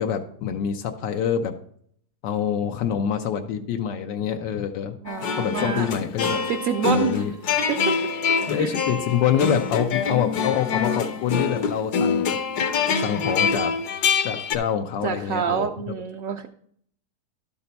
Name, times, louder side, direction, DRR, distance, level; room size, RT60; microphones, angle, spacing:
voice 1, 0.0-1.5 2.2-4.9 5.4-6.4 6.9-7.4 8.5-12.4 12.9-13.7 14.2-15.7, left 8 dB, 90° left, 5 dB, 1.3 m, -26 dB
voice 2, 5.0-5.9 6.5-7.2 7.7-8.0 8.6-8.8 15.0-16.5, right 8 dB, 70° right, 5 dB, 0.8 m, -27 dB
sound 1, 5.1-14.6, left 5 dB, 70° left, 1.2 m, -25 dB
12.0 x 5.6 x 4.0 m, 0.63 s
omnidirectional pair, 1.8 m